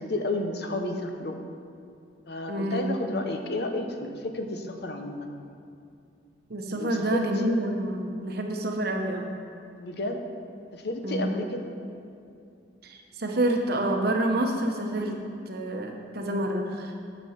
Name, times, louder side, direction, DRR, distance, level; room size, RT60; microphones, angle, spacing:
voice 1, 0.0-1.4 2.3-5.4 6.8-7.5 9.8-10.2 10.7-11.7, left 1 dB, 60° left, 5 dB, 0.8 m, -31 dB
voice 2, 2.5-2.9 6.5-9.3 11.0-11.3 12.8-15.2 15.5-16.9, right 1 dB, 55° right, 2 dB, 1.0 m, -28 dB
9.4 x 6.3 x 5.8 m, 2.5 s
head